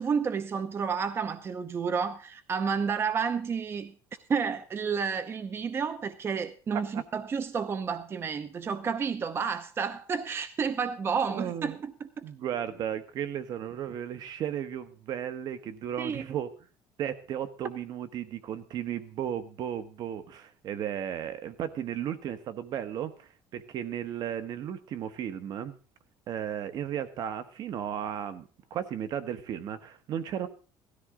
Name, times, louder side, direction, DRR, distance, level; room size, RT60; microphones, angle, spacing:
voice 1, 0.0-3.9 4.3-12.2 16.0-16.3, right 6 dB, 30° right, 0.7 m, -31 dB
voice 2, 11.3-11.8 12.2-16.5 17.0-25.7 26.3-30.5, right 9 dB, 55° right, 1.4 m, -35 dB
17.0 x 13.5 x 3.8 m
cardioid pair, 130°, 8 cm